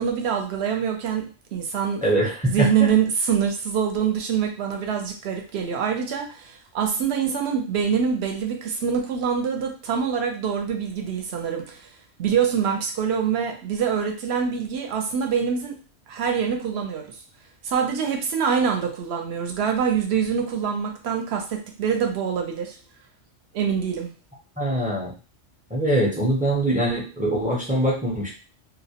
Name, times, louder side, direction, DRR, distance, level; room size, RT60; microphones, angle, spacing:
voice 1, 0.0-2.0 2.4-11.8 12.2-15.8 16.1-17.1 17.6-22.8 23.5-24.1, right 7 dB, 65° right, 3 dB, 0.8 m, -25 dB
voice 2, 2.0-2.9 24.6-25.1 25.7-28.3, right 1 dB, 10° right, -4 dB, 0.4 m, -23 dB
2.3 x 2.0 x 2.8 m, 0.34 s
omnidirectional pair, 1.2 m